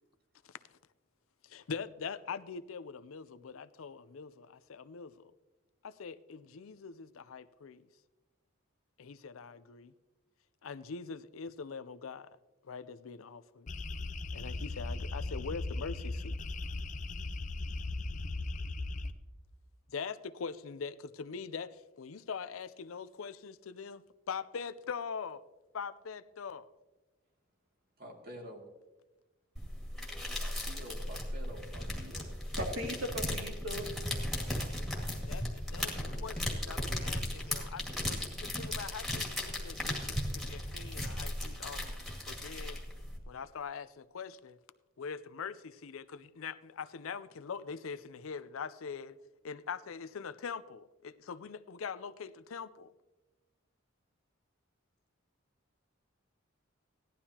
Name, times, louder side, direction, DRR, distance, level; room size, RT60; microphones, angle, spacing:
voice 1, 1.4-5.3 5.8-7.9 9.0-9.9 10.6-12.3 12.6-13.7 14.3-16.4 19.9-25.4 25.7-26.7 35.3-41.9 42.3-42.8 43.3-44.6 45.0-49.2 49.4-52.9, left 5 dB, 90° left, 0.5 m, -43 dB
sound 1, 13.7-19.1, left 2 dB, 40° left, 0.6 m, -37 dB
voice 2, 28.0-28.6 30.4-32.3 37.3-37.4, equal, 50° right, 2.3 m, -48 dB
sound 2, 29.6-43.2, left 1 dB, ahead, 2.0 m, -37 dB
voice 3, 32.5-33.9, equal, 80° right, 2.4 m, -37 dB
17.0 x 11.5 x 2.9 m
head